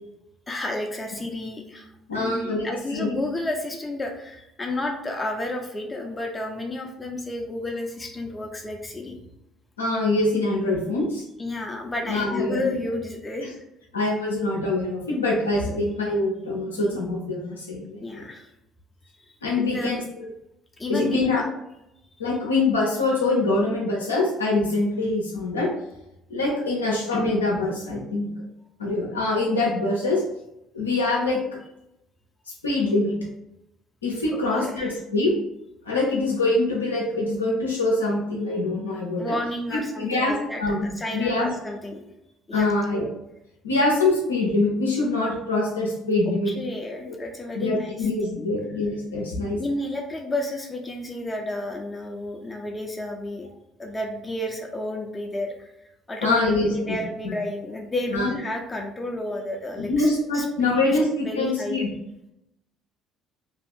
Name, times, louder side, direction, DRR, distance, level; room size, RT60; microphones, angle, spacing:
voice 1, 0.5-9.1 11.4-13.5 18.0-18.5 19.3-20.0 20.8-21.4 22.1-22.2 34.3-34.9 39.2-42.1 42.5-42.7 46.5-48.5 49.6-53.5 53.8-60.1 60.3-61.0 61.2-61.8, left 1 dB, 20° left, 1 dB, 0.5 m, -31 dB
voice 2, 2.1-3.1 9.8-11.2 12.1-12.7 13.9-18.0 19.4-20.3 20.9-21.5 22.2-25.7 26.3-28.3 28.8-30.2 30.7-31.4 32.6-33.2 34.0-35.3 35.8-39.3 39.7-41.5 42.5-43.0 43.6-46.5 47.0-47.2 47.5-49.6 56.2-57.0 57.2-57.4 58.1-58.3 59.8-61.9, left 2 dB, 90° left, -3 dB, 0.5 m, -24 dB
2.7 x 2.4 x 3.5 m, 0.86 s
hypercardioid pair, 55°, 0 cm